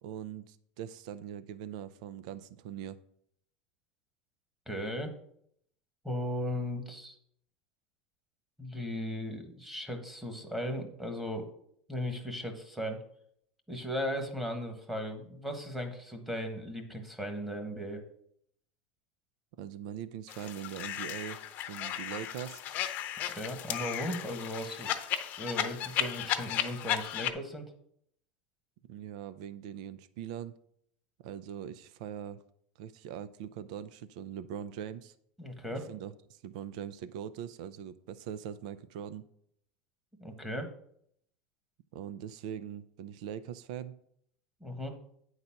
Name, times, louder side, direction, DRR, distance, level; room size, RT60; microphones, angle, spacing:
voice 1, 0.0-3.0 19.6-22.6 28.9-30.6 31.2-32.4 32.8-35.1 35.9-39.2 41.9-44.0, right 9 dB, 70° right, 14 dB, 0.5 m, -42 dB
voice 2, 4.7-5.1 6.0-7.2 8.6-11.5 11.9-13.0 13.7-18.0 23.3-24.9 25.4-27.6 35.4-35.9 40.2-40.7 44.6-45.0, equal, 5° right, 4 dB, 1.3 m, -37 dB
sound 1, 20.3-27.3, left 11 dB, 45° left, 0.7 m, -35 dB
9.2 x 4.1 x 5.7 m, 0.69 s
supercardioid pair, 135°, 4 cm